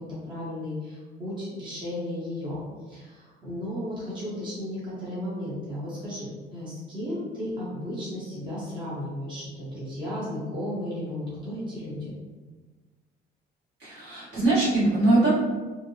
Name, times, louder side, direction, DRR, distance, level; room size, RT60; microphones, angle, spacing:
voice 1, 0.0-2.6 2.9-12.1, left 1 dB, 25° right, -9 dB, 0.8 m, -34 dB
voice 2, 13.8-15.3, right 2 dB, 70° right, -9 dB, 1.2 m, -22 dB
2.6 x 2.0 x 2.7 m, 1.3 s
cardioid pair, 155°, 18 cm